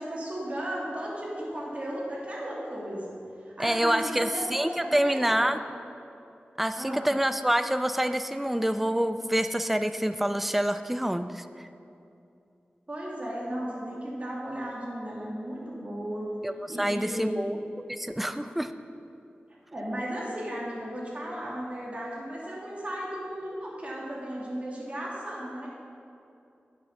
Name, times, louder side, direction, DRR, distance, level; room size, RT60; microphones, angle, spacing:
voice 1, 0.0-3.1 3.4-5.4 6.7-7.1 12.9-16.3 16.7-17.5 19.7-25.7, equal, 35° right, -5 dB, 2.6 m, -35 dB
voice 2, 3.6-5.6 6.6-11.7 16.4-17.6 17.9-18.7, right 1 dB, 5° right, 10 dB, 0.4 m, -27 dB
8.7 x 7.7 x 5.8 m, 2.6 s
wide cardioid pair, 80°, 4 cm